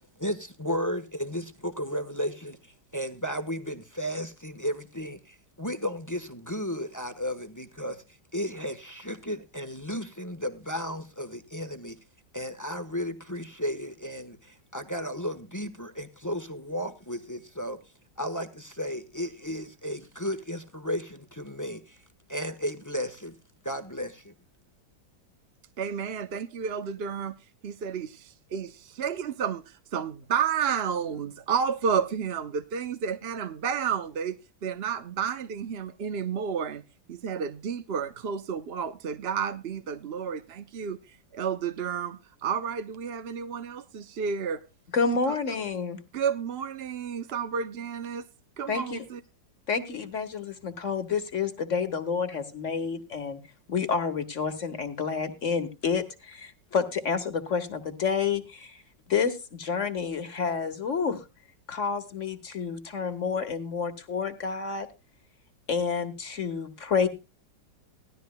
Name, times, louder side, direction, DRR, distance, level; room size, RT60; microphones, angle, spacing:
voice 1, 0.2-2.6 2.9-8.0 8.3-12.0 12.3-17.8 18.2-22.0 22.3-23.3 23.6-24.3, equal, 10° left, 1.1 m, -34 dB
voice 2, 25.8-27.4 27.6-29.6 29.9-36.8 37.1-41.0 41.3-44.6 46.1-48.2 48.6-49.2, right 7 dB, 50° right, 0.8 m, -31 dB
voice 3, 44.9-46.0 48.7-49.0 49.7-53.4 53.7-58.8 59.1-61.2 61.7-64.9 65.7-67.1, left 5 dB, 45° left, 1.8 m, -29 dB
18.0 x 13.5 x 2.2 m
omnidirectional pair, 1.9 m